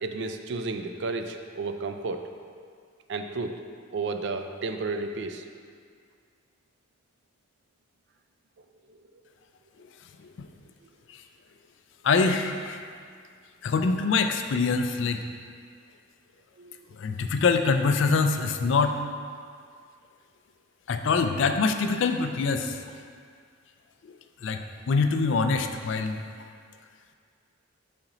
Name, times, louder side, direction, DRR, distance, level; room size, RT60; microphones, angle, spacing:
voice 1, 0.0-2.3 3.1-3.6 3.9-5.4 8.6-9.0 16.6-16.8, right 3 dB, 55° right, 6 dB, 0.3 m, -32 dB
voice 2, 12.0-12.8 13.6-15.2 17.0-19.0 20.9-22.8 24.0-24.2 24.4-26.2, left 4 dB, 60° left, 7 dB, 0.3 m, -24 dB
5.9 x 4.2 x 3.9 m, 2.1 s
head